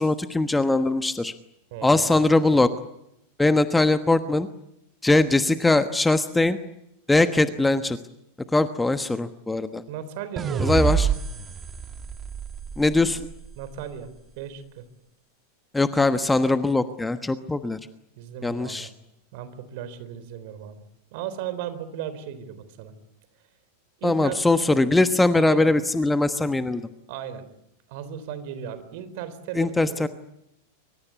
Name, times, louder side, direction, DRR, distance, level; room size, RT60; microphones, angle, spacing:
voice 1, 0.0-1.3 1.8-2.7 3.4-4.5 5.0-6.6 7.1-8.0 8.5-9.8 10.6-11.1 12.8-13.2 15.7-17.8 18.4-18.9 24.0-26.8 29.5-30.1, left 2 dB, 5° left, 11 dB, 1.2 m, -21 dB
voice 2, 1.7-2.5 9.9-10.9 13.6-14.1 14.4-14.8 18.2-18.9 19.3-20.8 21.1-22.9 24.0-24.4 25.4-25.7 27.1-27.4 27.9-30.1, right 9 dB, 50° right, 13 dB, 3.8 m, -36 dB
sound 1, 10.4-13.6, right 7 dB, 20° right, 1.7 m, -27 dB
25.0 x 25.0 x 8.3 m, 0.81 s
figure-of-eight pair, 90°, 0 cm